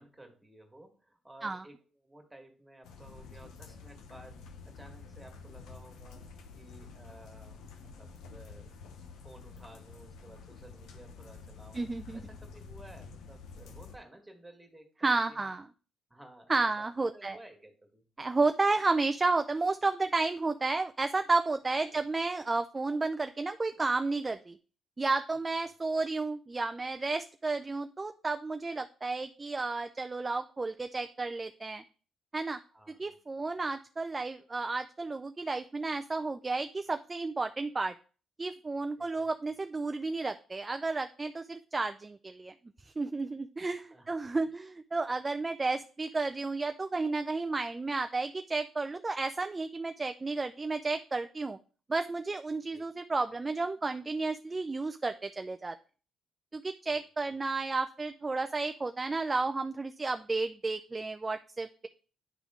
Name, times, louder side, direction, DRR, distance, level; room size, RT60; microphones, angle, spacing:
voice 1, 0.0-4.4 4.6-6.3 6.5-7.6 8.0-8.7 9.2-11.8 12.1-15.5 16.1-16.9 17.1-18.0 21.9-22.0 32.7-33.2 39.0-39.3 43.7-44.7 52.7-52.8 56.9-57.0 57.3-57.4, right 1 dB, 10° right, 3 dB, 1.8 m, -55 dB
sound 1, 2.8-14.0, left 4 dB, 85° left, 0.8 m, -49 dB
voice 2, 11.7-12.2 15.0-15.7 16.5-17.4 18.2-24.6 25.0-31.8 32.3-32.6 33.0-37.9 38.4-42.5 42.8-51.6 51.9-55.8 56.5-61.9, right 3 dB, 25° right, 8 dB, 0.4 m, -32 dB
9.9 x 3.5 x 3.7 m, 0.38 s
cardioid pair, 90°, 0 cm